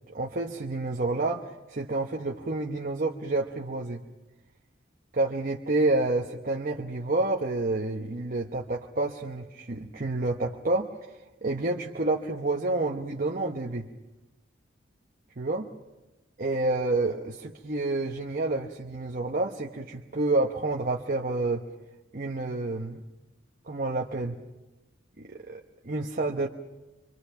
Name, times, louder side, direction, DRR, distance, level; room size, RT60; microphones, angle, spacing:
voice 1, 0.1-4.0 5.1-13.9 15.4-15.7 16.4-21.7 22.1-23.0 23.6-24.3 25.2-26.5, right 2 dB, 45° right, 1 dB, 1.0 m, -29 dB
25.0 x 24.5 x 5.8 m, 1.1 s
head